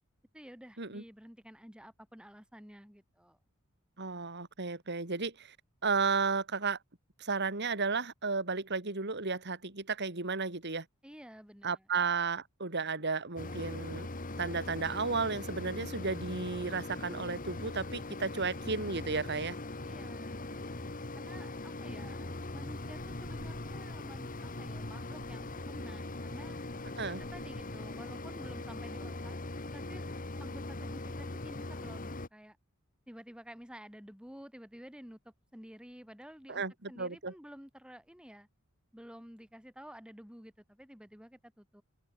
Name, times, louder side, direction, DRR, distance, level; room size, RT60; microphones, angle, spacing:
voice 1, 0.3-3.4 11.0-11.9 19.8-20.8 21.2-26.6 27.0-29.4 29.7-30.1 30.4-32.6 33.1-38.5 38.9-41.8, equal, 5° right, 7.1 m, -51 dB
voice 2, 4.0-5.5 5.8-6.8 7.2-10.8 11.6-14.1 14.4-19.6 27.0-27.2 36.5-37.3, right 4 dB, 55° right, 3.3 m, -33 dB
Mechanisms, 13.4-32.3, left 2 dB, 40° left, 1.9 m, -41 dB
head